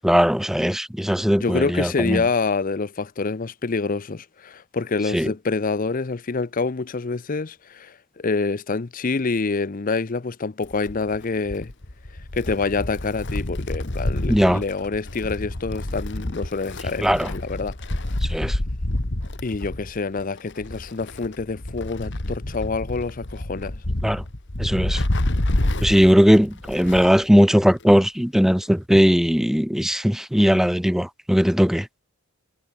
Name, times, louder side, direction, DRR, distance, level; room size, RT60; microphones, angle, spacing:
voice 1, 0.0-2.2 5.1-5.3 14.3-14.6 17.0-17.3 18.3-18.6 24.0-24.2 24.6-25.0 25.8-31.9, equal, ahead, 0.7 m, -19 dB
voice 2, 1.4-11.7 12.3-17.8 19.4-23.8, left 4 dB, 40° left, 0.6 m, -26 dB
Wind, 10.6-27.2 27.5-27.6 28.6-28.7, left 1 dB, 55° left, 2.0 m, -28 dB
head